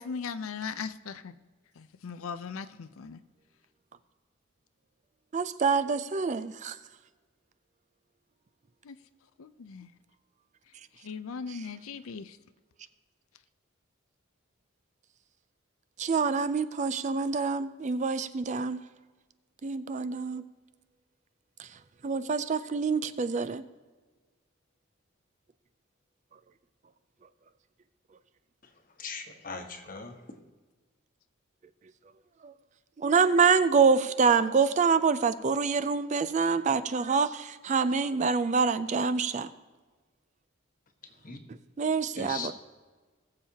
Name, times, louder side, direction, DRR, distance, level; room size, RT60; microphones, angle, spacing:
voice 1, 0.0-1.4 1.8-3.2 8.8-9.0 9.4-9.9 11.0-12.4, left 5 dB, 85° left, 12 dB, 0.5 m, -38 dB
voice 2, 5.3-6.8 16.0-18.8 19.6-20.4 21.6-21.7 22.0-23.6 32.4-32.5 33.0-39.5 41.8-42.5, right 5 dB, 35° right, 13 dB, 0.4 m, -26 dB
voice 3, 29.0-30.1 41.2-41.4 42.1-42.5, left 4 dB, 40° left, 5 dB, 1.1 m, -39 dB
20.0 x 7.3 x 2.8 m, 1.4 s
head